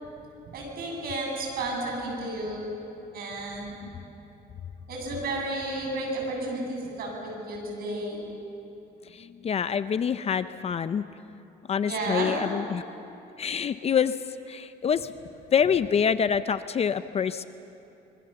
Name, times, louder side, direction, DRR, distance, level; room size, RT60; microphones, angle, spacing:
voice 1, 0.5-2.6 3.1-3.7 4.9-8.2 11.9-12.5, right 2 dB, 65° right, 0 dB, 7.9 m, -32 dB
voice 2, 9.1-11.0 11.7-12.8 13.4-14.2 14.5-15.1 15.5-17.4, left 7 dB, 40° left, 12 dB, 0.6 m, -26 dB
25.5 x 23.0 x 7.0 m, 2.9 s
cardioid pair, 110°, 17 cm